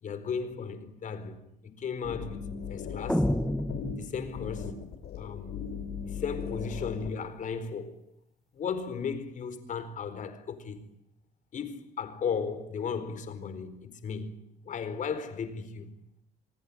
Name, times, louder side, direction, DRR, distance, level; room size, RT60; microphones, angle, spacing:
voice 1, 0.0-3.3 4.0-4.7 5.2-5.6 6.0-8.0 8.5-10.8 11.5-14.3 14.6-15.9, left 6 dB, 50° left, 4.5 m, -35 dB
sound 1, 2.0-7.2, left 7 dB, 70° left, 4.9 m, -38 dB
sound 2, 3.1-4.7, equal, ahead, 1.0 m, -29 dB
27.5 x 20.0 x 9.8 m
cardioid pair, 110°, 17 cm